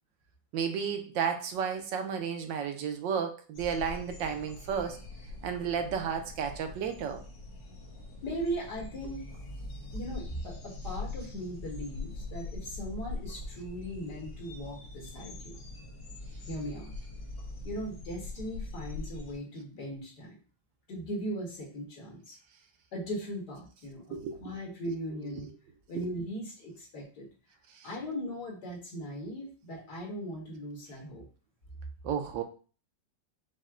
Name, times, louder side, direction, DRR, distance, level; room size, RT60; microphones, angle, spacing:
voice 1, 0.5-5.0 5.4-7.2 24.1-24.6 27.8-27.9 32.0-32.4, right 7 dB, 75° right, 6 dB, 1.3 m, -32 dB
sound 1, 3.5-19.3, left 2 dB, 75° left, 1.8 m, -42 dB
voice 2, 8.2-9.2 9.9-15.6 16.5-16.9 17.6-20.4 20.9-22.4 22.9-25.5 25.9-27.3 27.8-31.2, equal, 60° left, -1 dB, 2.0 m, -38 dB
6.3 x 2.2 x 3.6 m, 0.37 s
omnidirectional pair, 2.0 m